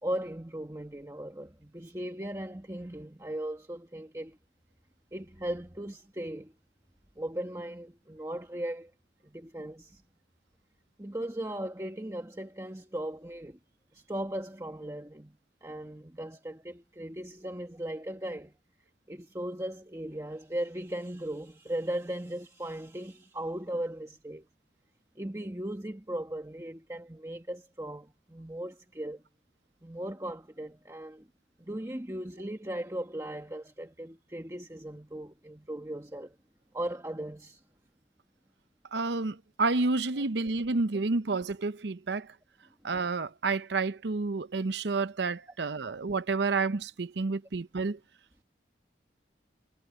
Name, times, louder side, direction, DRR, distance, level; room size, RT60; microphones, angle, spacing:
voice 1, 0.0-4.4 5.1-6.5 7.2-8.9 9.2-10.0 11.0-13.6 13.9-18.5 19.1-24.5 25.1-29.2 29.8-31.3 31.6-36.4 36.7-37.6, right 1 dB, 15° right, 1.4 m, -38 dB
voice 2, 38.9-42.3 42.8-48.0, right 3 dB, 70° right, 0.7 m, -30 dB
head